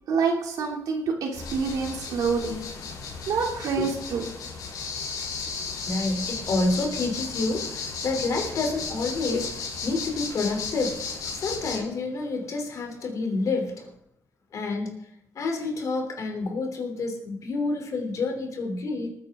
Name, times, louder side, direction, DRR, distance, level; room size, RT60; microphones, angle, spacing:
voice 1, 0.1-2.6 3.3-4.2, right 5 dB, 85° right, 1 dB, 2.9 m, -27 dB
sound 1, 1.3-11.8, left 5 dB, 85° left, 3.4 m, -34 dB
voice 2, 5.7-13.9 14.5-14.9 15.3-19.1, left 3 dB, 65° left, 3 dB, 3.3 m, -29 dB
19.5 x 9.4 x 3.8 m, 0.76 s
cardioid pair, 100°, 6 cm